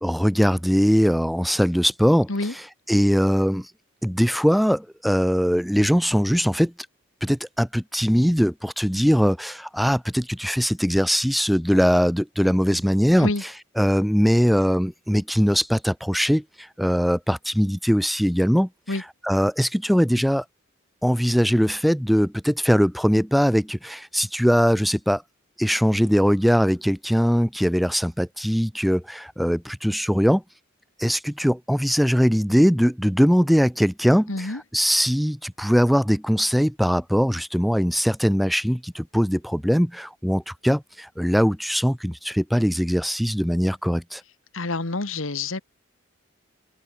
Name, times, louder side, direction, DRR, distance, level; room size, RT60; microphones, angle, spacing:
voice 1, 0.0-3.7 4.0-6.7 7.2-13.5 13.8-20.4 21.0-25.2 25.6-30.4 31.0-44.2, equal, ahead, 1.8 m, -21 dB
voice 2, 34.3-34.6 44.5-45.6, left 2 dB, 85° left, 1.8 m, -27 dB
open air
head